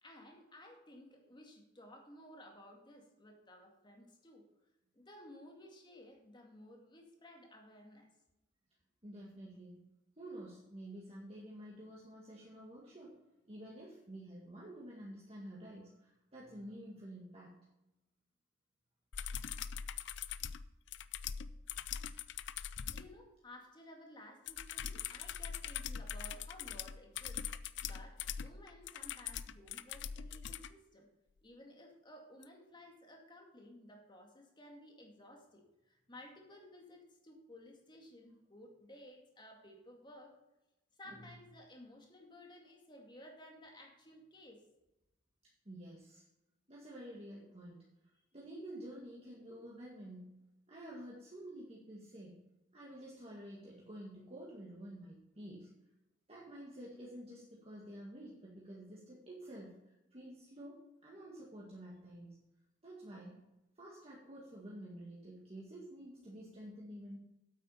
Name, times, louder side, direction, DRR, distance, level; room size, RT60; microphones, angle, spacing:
voice 1, 0.0-4.4 4.9-8.1 22.9-31.1 31.4-40.4 41.0-44.6, left 1 dB, 25° left, 1 dB, 2.1 m, -56 dB
voice 2, 9.0-9.8 10.2-13.2 13.4-17.6 41.1-41.3 45.7-46.2 46.7-47.8 48.3-50.4 50.7-52.4 52.7-55.7 56.3-62.3 62.8-63.4 63.8-67.2, right 1 dB, 30° right, -5 dB, 2.0 m, -50 dB
sound 1, 19.1-23.1 24.5-30.7 32.4-32.5, left 8 dB, 65° left, 0.5 m, -42 dB
8.9 x 8.4 x 5.7 m, 0.95 s
head